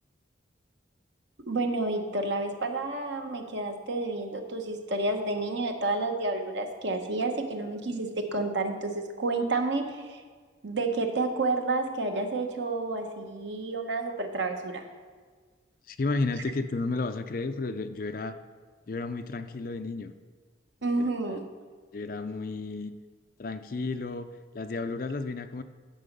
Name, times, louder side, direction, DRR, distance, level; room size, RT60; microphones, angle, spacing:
voice 1, 1.5-10.2 10.6-14.9 20.8-21.4, right 2 dB, 70° right, 4 dB, 1.0 m, -30 dB
voice 2, 15.9-18.4 18.9-20.1 21.0-21.4 21.9-22.9 23.4-24.3 24.5-25.6, left 3 dB, 45° left, 10 dB, 0.4 m, -32 dB
10.0 x 6.3 x 5.4 m, 1.5 s
head